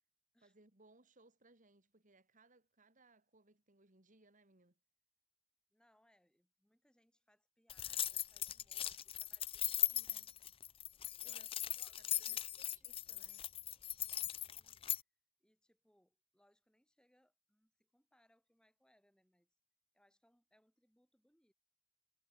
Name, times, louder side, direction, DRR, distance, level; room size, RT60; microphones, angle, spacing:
voice 1, 0.4-4.8 9.9-10.3 11.2-11.5 12.0-13.5, right 2 dB, 35° right, 2.3 m, -68 dB
voice 2, 5.7-10.7 11.2-12.9 14.4-14.9 15.4-19.5 19.9-21.5, equal, 5° left, 5.8 m, -76 dB
sound 1, 7.7-15.0, left 12 dB, 25° left, 0.4 m, -39 dB
head